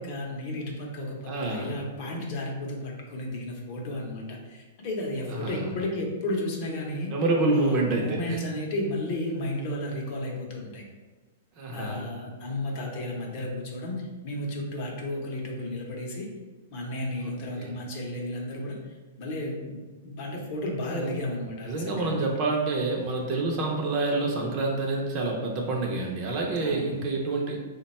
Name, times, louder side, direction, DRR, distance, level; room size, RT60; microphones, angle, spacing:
voice 1, 0.0-7.1 7.5-10.8 11.7-16.3 16.7-18.8 19.2-22.2 26.6-27.0, left 1 dB, 40° left, 0 dB, 0.7 m, -33 dB
voice 2, 1.3-1.7 5.3-5.6 7.1-8.4 11.6-12.1 17.2-17.7 21.0-21.1 21.6-27.6, right 2 dB, 30° right, 0 dB, 0.5 m, -27 dB
3.3 x 2.2 x 4.1 m, 1.2 s
hypercardioid pair, 165°, 0 cm